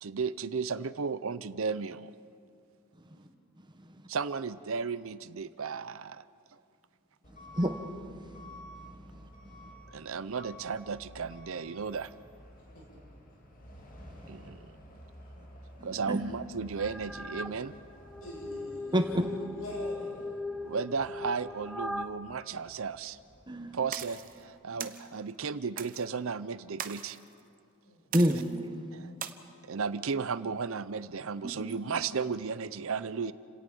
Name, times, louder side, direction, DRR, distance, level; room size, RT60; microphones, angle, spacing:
voice 1, 0.0-2.1 4.1-6.2 9.9-12.1 14.3-14.7 15.8-17.7 20.6-23.2 23.7-27.2 28.9-29.1 29.6-33.3, right 5 dB, 70° right, 15 dB, 0.6 m, -34 dB
Truck / Alarm, 7.2-24.5, equal, 40° left, 2.6 m, -52 dB
voice 2, 7.5-8.5 8.9-9.2 14.1-14.2 15.8-16.2 18.9-19.1 23.5-23.8 24.7-24.9 28.1-28.7 31.7-31.8, equal, 20° right, 6 dB, 1.2 m, -30 dB
sound 1, 16.8-17.5 18.0-22.1, left 2 dB, ahead, 0.6 m, -39 dB
voice 3, 18.2-20.5 27.8-28.2, left 1 dB, 75° left, -1 dB, 6.3 m, -46 dB
sound 2, 23.9-24.3 24.8-25.0 25.8-26.0 26.8-27.2 28.1-28.6 29.2-29.3, right 9 dB, 40° right, 0.9 m, -39 dB
30.0 x 17.5 x 5.4 m, 2.4 s
head